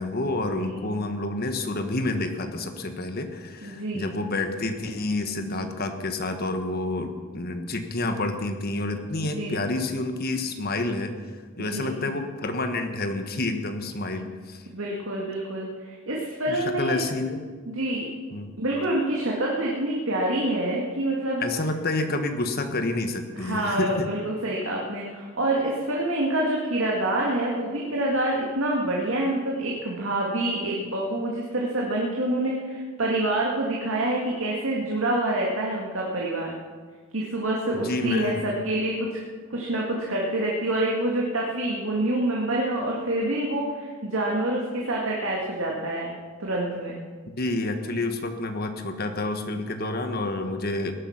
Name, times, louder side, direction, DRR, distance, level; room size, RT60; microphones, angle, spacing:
voice 1, 0.0-11.1 11.6-14.7 16.5-17.4 18.3-18.5 21.4-24.1 37.7-38.4 47.3-50.9, left 2 dB, 50° left, 7 dB, 1.4 m, -29 dB
voice 2, 3.6-4.1 9.3-9.6 11.6-12.0 14.7-17.0 17.7-18.1 18.6-21.4 23.4-36.5 37.1-39.2 39.5-46.1 46.4-47.0, right 1 dB, 75° right, -3 dB, 2.2 m, -27 dB
18.5 x 11.0 x 6.0 m, 1.5 s
head